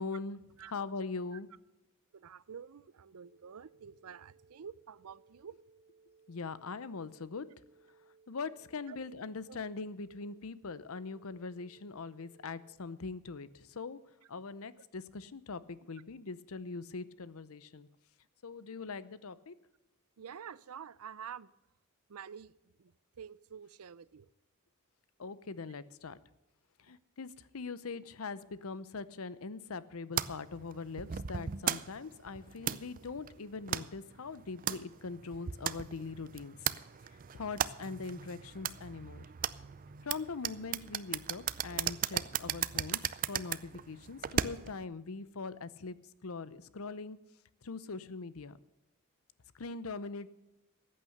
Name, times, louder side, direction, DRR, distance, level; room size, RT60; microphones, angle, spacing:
voice 1, 0.0-0.4 0.7-1.5 6.3-7.5 8.3-14.0 14.3-17.9 18.4-19.6 25.2-26.2 26.8-36.7 37.3-39.2 40.0-43.0 43.3-46.0 46.2-47.2 47.6-48.6 49.5-50.3, left 4 dB, 70° left, 16 dB, 0.7 m, -42 dB
voice 2, 2.1-5.6 8.9-9.0 9.5-9.6 20.2-21.5 22.1-24.3, right 7 dB, 90° right, 20 dB, 0.5 m, -48 dB
sound 1, 3.2-12.7, right 4 dB, 15° right, 3.1 m, -65 dB
sound 2, 30.2-44.8, right 9 dB, 40° right, 0.5 m, -37 dB
14.5 x 8.8 x 6.6 m, 0.95 s
head